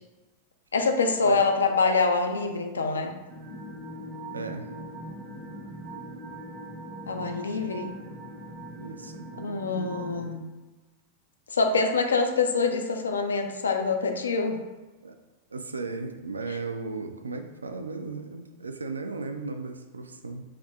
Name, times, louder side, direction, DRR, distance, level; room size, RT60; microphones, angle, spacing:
voice 1, 0.7-3.1 7.1-7.9 9.4-10.4 11.5-14.6 16.5-16.6, left 4 dB, 70° left, 5 dB, 0.4 m, -25 dB
sound 1, 3.3-10.4, right 1 dB, 35° right, 0.6 m, -40 dB
voice 2, 4.3-4.7 8.7-9.3 15.0-15.2 15.5-20.4, right 3 dB, 75° right, 6 dB, 0.3 m, -36 dB
4.7 x 2.6 x 2.2 m, 1.2 s
figure-of-eight pair, 90°, 0 cm